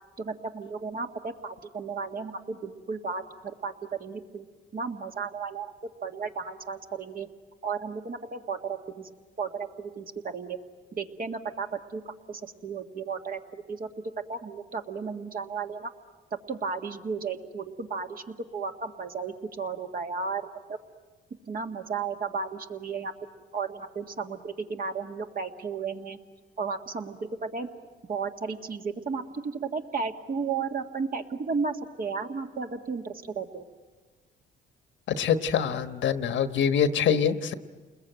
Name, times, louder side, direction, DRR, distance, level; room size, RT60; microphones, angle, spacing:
voice 1, 0.2-4.5 4.7-5.7 6.0-7.3 7.6-9.1 9.4-10.6 11.0-13.9 14.3-15.9 16.5-20.8 21.5-23.1 23.5-26.2 26.6-27.7 28.1-33.6, right 5 dB, 45° right, 5 dB, 1.9 m, -34 dB
voice 2, 35.1-37.5, left 7 dB, 70° left, 10 dB, 1.2 m, -25 dB
29.5 x 21.0 x 9.1 m, 1.4 s
cardioid pair, 90°, 20 cm